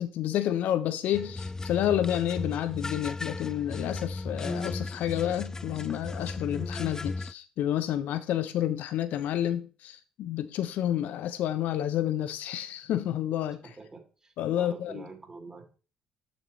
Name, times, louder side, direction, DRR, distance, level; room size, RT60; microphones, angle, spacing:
voice 1, 0.0-13.6 14.4-15.0, left 11 dB, 70° left, 0.6 m, -30 dB
sound 1, 1.1-7.3, left 3 dB, 20° left, 0.4 m, -36 dB
voice 2, 13.8-15.7, right 3 dB, 25° right, 3.0 m, -46 dB
7.4 x 6.9 x 3.1 m
hypercardioid pair, 55°, 3 cm